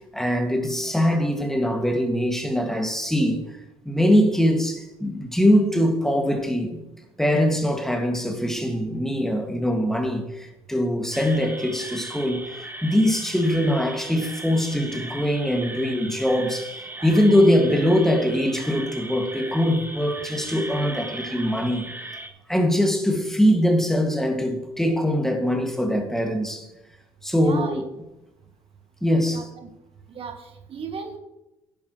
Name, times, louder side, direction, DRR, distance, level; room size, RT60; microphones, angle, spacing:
voice 1, 0.1-3.6 3.9-6.8 7.2-16.7 17.0-21.8 22.5-26.7 27.2-27.9 29.0-29.4, equal, 5° left, 2.1 m, -22 dB
sound 1, 11.1-22.3, right 2 dB, 15° right, 1.9 m, -38 dB
voice 2, 17.0-17.4 27.4-27.8 29.3-29.7 30.1-31.2, right 5 dB, 50° right, 1.4 m, -36 dB
11.0 x 10.5 x 3.1 m
hypercardioid pair, 55°, 12 cm